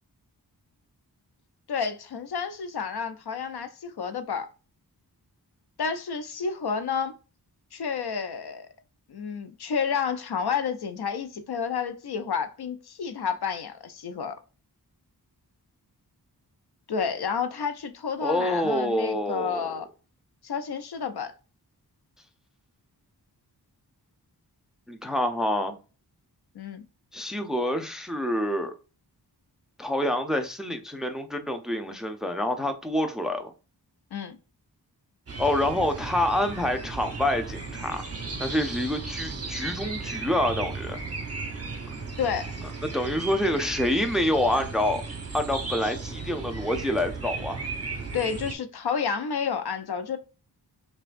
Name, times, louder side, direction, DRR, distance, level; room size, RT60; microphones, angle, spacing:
voice 1, 1.7-4.5 5.8-7.2 7.7-8.7 9.1-14.4 16.9-19.9 20.4-21.3 26.6-26.8 34.1-34.4 42.2-42.6 48.1-50.2, left 6 dB, 70° left, 0.6 m, -30 dB
voice 2, 18.2-19.7 24.9-25.7 27.1-28.7 29.8-33.5 35.4-38.1 38.4-41.0 42.8-45.0 45.3-47.6, left 1 dB, ahead, 0.5 m, -27 dB
sound 1, 35.3-48.6, right 4 dB, 35° right, 0.9 m, -35 dB
5.5 x 2.3 x 2.5 m
wide cardioid pair, 75°, 40 cm